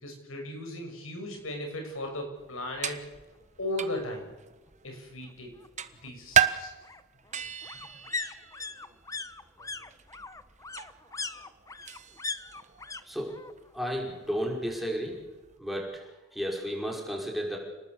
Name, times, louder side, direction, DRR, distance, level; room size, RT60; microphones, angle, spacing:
voice 1, 0.0-3.0 3.6-4.3 4.8-5.5 6.0-6.7, left 1 dB, 85° left, 4 dB, 6.8 m, -36 dB
sound 1, 2.1-2.2 2.6-2.7 2.9-3.9 5.2-13.0 13.3-13.9 14.1-15.2 15.5-15.6, left 4 dB, 15° left, 0.9 m, -40 dB
sound 2, 2.4-15.6, right 9 dB, 35° right, 1.2 m, -35 dB
voice 2, 13.0-13.4 13.7-15.2 15.6-17.6, equal, ahead, -1 dB, 5.6 m, -33 dB
29.0 x 19.5 x 8.2 m, 1.1 s
head